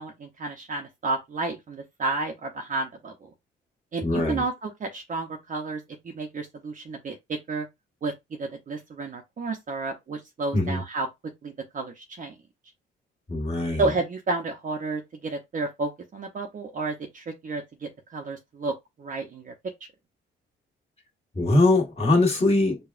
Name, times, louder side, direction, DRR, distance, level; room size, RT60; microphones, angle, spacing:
voice 1, 0.0-3.1 3.9-5.8 6.1-7.7 8.0-8.1 8.4-11.1 11.4-12.3 13.8-19.5, right 3 dB, 40° right, 0.7 m, -31 dB
voice 2, 4.0-4.4 10.5-10.8 13.3-13.8 21.3-22.8, left 2 dB, 30° left, 1.6 m, -22 dB
4.8 x 2.3 x 2.5 m
cardioid pair, 90°, 20 cm